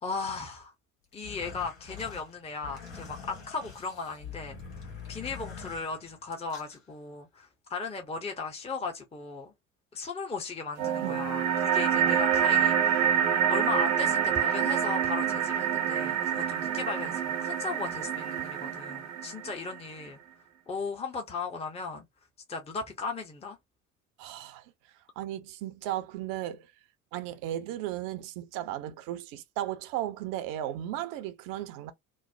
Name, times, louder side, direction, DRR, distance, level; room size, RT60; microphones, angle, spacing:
voice 1, 0.0-0.7 1.1-9.5 9.9-13.1 13.5-20.2 20.7-22.0 22.5-23.6, left 4 dB, 15° left, 0.8 m, -37 dB
sound 1, 1.1-6.8, left 6 dB, 75° left, 1.5 m, -44 dB
sound 2, 10.8-19.8, right 9 dB, 80° right, 0.9 m, -27 dB
voice 2, 24.2-24.6 25.2-26.7 27.1-31.9, right 13 dB, 55° right, 0.6 m, -35 dB
3.1 x 2.0 x 2.6 m
figure-of-eight pair, 60°, 41 cm